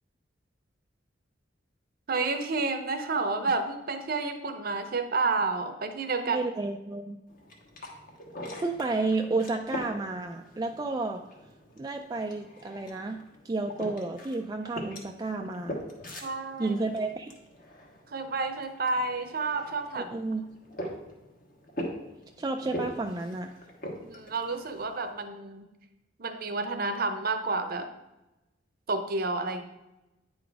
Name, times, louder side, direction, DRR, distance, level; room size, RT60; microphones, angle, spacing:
voice 1, 2.1-6.4 16.2-16.7 18.1-20.1 24.0-25.6 26.2-27.9 28.9-29.6, right 3 dB, 50° right, 7 dB, 0.8 m, -30 dB
voice 2, 6.2-7.2 8.6-11.2 11.8-15.8 16.6-17.3 19.9-20.4 22.4-23.5, right 3 dB, 20° right, 3 dB, 0.3 m, -31 dB
sound 1, 7.3-25.1, equal, 50° left, 1.3 m, -42 dB
9.4 x 3.9 x 4.6 m, 0.99 s
head